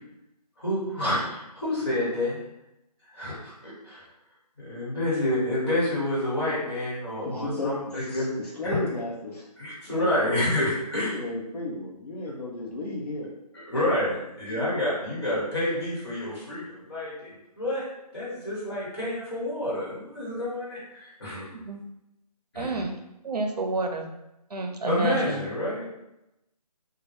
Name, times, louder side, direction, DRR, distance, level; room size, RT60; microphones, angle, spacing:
voice 1, 0.6-2.4 3.1-4.0 4.7-8.3 8.7-8.8 9.6-11.1 13.5-21.4 22.5-22.8 24.9-25.9, left 1 dB, 40° left, -9 dB, 1.3 m, -28 dB
voice 2, 7.2-9.5 9.9-13.3 14.4-14.7 17.3-17.4, left 2 dB, 70° left, -3 dB, 0.7 m, -34 dB
voice 3, 21.4-21.8 22.6-22.9 23.2-24.1 24.5-25.5, right 2 dB, 70° right, 4 dB, 0.5 m, -30 dB
2.2 x 2.1 x 3.1 m, 0.89 s
figure-of-eight pair, 175°, 21 cm